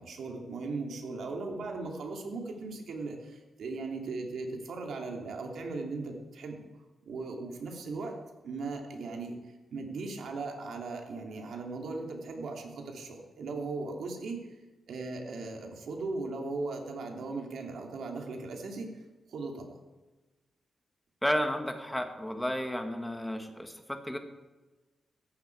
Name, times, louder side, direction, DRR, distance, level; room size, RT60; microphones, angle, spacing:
voice 1, 0.0-6.6 7.0-8.2 8.4-14.6 14.9-18.9 19.3-19.7, right 3 dB, 80° right, 2 dB, 2.9 m, -38 dB
voice 2, 21.2-24.2, equal, 5° left, 6 dB, 1.5 m, -32 dB
17.5 x 14.0 x 4.8 m, 1.2 s
wide cardioid pair, 160°, 0 cm